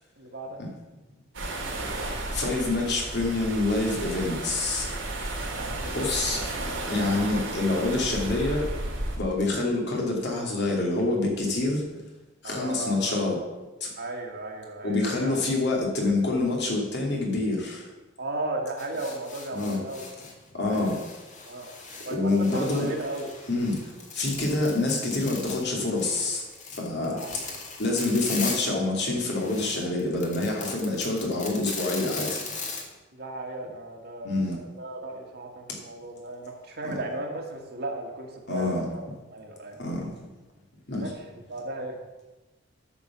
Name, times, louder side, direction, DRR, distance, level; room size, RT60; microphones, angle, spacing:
voice 1, 0.2-0.6 5.6-6.0 12.4-13.4 14.0-15.4 18.2-20.1 20.6-21.0 21.5-23.3 27.1-27.4 27.8-27.9 33.1-39.0 39.3-39.8 41.0-42.0, right 2 dB, 55° right, 2 dB, 1.8 m, -36 dB
sound 1, 1.3-9.2, right 2 dB, 90° right, 2.4 m, -33 dB
voice 2, 2.3-4.9 5.9-6.4 6.9-8.7 9.2-11.8 12.4-13.4 13.8-13.9 14.8-17.9 19.5-19.8 20.5-21.0 22.1-22.9 23.5-23.8 24.1-26.4 26.8-27.2 27.8-32.4 34.2-34.6 35.7-35.8 36.8-36.9 38.5-38.9 39.8-40.1 40.9-41.1, left 2 dB, 60° left, -1 dB, 2.7 m, -26 dB
sound 2, 18.8-20.3 20.7-28.7 29.0-32.8, left 4 dB, 40° left, 1.9 m, -39 dB
9.9 x 6.2 x 7.3 m, 1.1 s
head